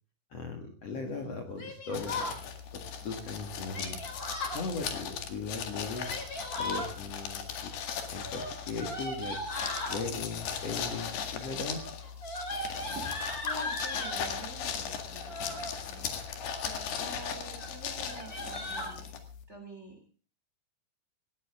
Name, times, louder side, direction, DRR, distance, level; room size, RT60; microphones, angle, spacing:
voice 1, 0.3-2.3 2.7-4.0 4.5-6.2 6.5-7.7 8.1-9.4 9.9-11.8, left 4 dB, 50° left, 4 dB, 2.4 m, -38 dB
Yell, 1.6-2.4 3.7-4.6 5.8-6.9 8.2-10.0 10.8-11.3 11.6-14.2 15.1-15.7 16.3-16.8 17.2-17.3 17.6-17.7 18.0-18.9, left 2 dB, 25° left, 4.0 m, -37 dB
sound 1, 1.9-19.4, left 7 dB, 80° left, 4.0 m, -38 dB
voice 2, 12.9-16.1 16.6-19.1 19.5-20.0, right 1 dB, 20° right, 5 dB, 2.6 m, -47 dB
18.5 x 17.0 x 3.6 m, 0.35 s
omnidirectional pair, 4.5 m